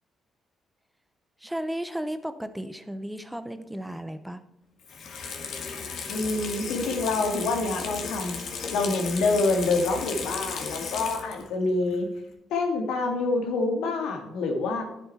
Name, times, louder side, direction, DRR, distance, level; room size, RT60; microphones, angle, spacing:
voice 1, 1.4-4.4, equal, 5° right, 10 dB, 0.8 m, -34 dB
Water tap faucet / Sink (filling or washing), 4.8-11.5 11.9-12.0, left 5 dB, 70° left, 1.8 m, -35 dB
voice 2, 6.1-8.4 8.7-12.1 12.5-14.8, left 3 dB, 85° left, 4 dB, 1.9 m, -26 dB
10.5 x 7.9 x 4.2 m, 0.83 s
cardioid pair, 90°, 0 cm